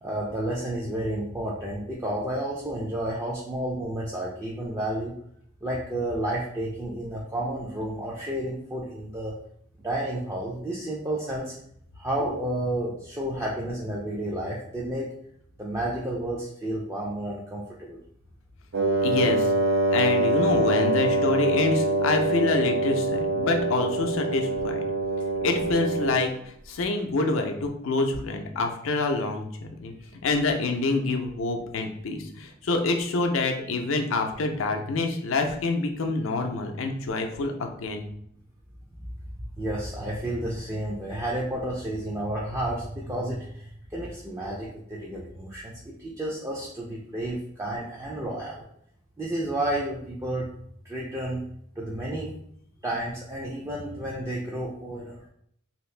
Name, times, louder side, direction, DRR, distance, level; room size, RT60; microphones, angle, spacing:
voice 1, 0.0-5.1 5.6-9.3 9.8-11.5 11.9-15.1 15.6-18.0 30.1-30.2 39.6-48.6 49.2-50.5 50.8-51.4 51.8-52.3 52.8-55.2, right 1 dB, 15° right, -5 dB, 0.4 m, -31 dB
Wind instrument woodwind instrument, 18.7-26.3, right 2 dB, 75° right, 0.5 m, -24 dB
voice 2, 19.0-19.5 19.9-24.8 25.4-29.9 30.2-38.1, left 3 dB, 80° left, 4 dB, 0.5 m, -27 dB
2.8 x 2.5 x 3.2 m, 0.68 s
head